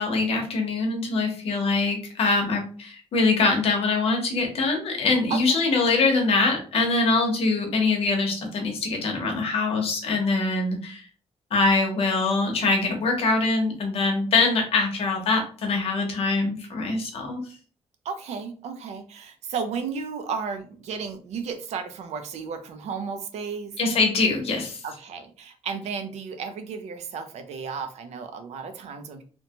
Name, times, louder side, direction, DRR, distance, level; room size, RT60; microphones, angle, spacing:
voice 1, 0.0-11.1 11.5-17.4 23.8-24.8, left 3 dB, 60° left, 2 dB, 0.8 m, -23 dB
voice 2, 5.3-5.6 18.0-23.8 24.8-29.2, right 5 dB, 85° right, 8 dB, 0.5 m, -33 dB
2.9 x 2.1 x 2.8 m, 0.41 s
wide cardioid pair, 180°, 11 cm